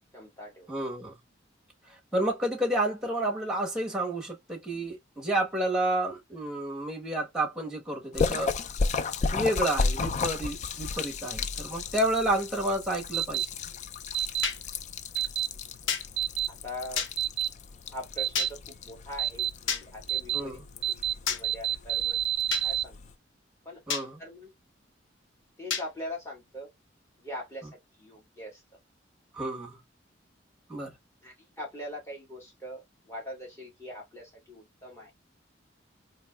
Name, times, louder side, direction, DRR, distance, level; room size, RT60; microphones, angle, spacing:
voice 1, 0.1-0.7 16.6-17.0 17.9-22.2 22.6-23.0 23.6-23.8 24.2-24.5 25.6-26.7 27.2-27.7 28.0-28.6 31.2-35.1, left 1 dB, 15° left, 1.7 m, -42 dB
voice 2, 0.7-1.1 2.1-8.5 9.3-13.5 20.3-20.6 23.9-24.2 29.3-29.8 30.7-30.9, right 1 dB, 5° right, 1.4 m, -30 dB
Splash splatter, 8.1-23.1, left 4 dB, 40° left, 0.3 m, -34 dB
sound 1, 13.1-13.4 14.1-14.5 15.1-15.5 16.2-16.5 17.2-17.5 18.2-18.5 19.2-19.5 20.1-20.4 20.8-21.1 21.4-22.8, right 12 dB, 65° right, 0.4 m, -28 dB
sound 2, 14.4-14.6 15.9-16.0 17.0-17.1 18.3-18.5 19.7-19.8 21.3-21.4 22.5-22.7 23.9-24.1 25.7-25.9, left 6 dB, 85° left, 0.7 m, -29 dB
3.8 x 2.9 x 2.2 m
head